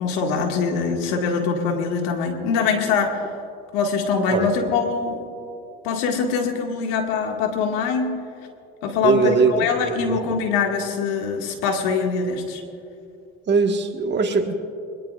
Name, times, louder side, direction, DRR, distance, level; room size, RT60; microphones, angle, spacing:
voice 1, 0.0-3.2 3.7-5.2 5.8-8.2 8.8-12.6, left 5 dB, 85° left, 2 dB, 2.0 m, -23 dB
voice 2, 9.0-10.2 13.5-14.5, right 4 dB, 35° right, 3 dB, 1.6 m, -20 dB
22.5 x 20.5 x 2.5 m, 2.6 s
supercardioid pair, 75°, 30 cm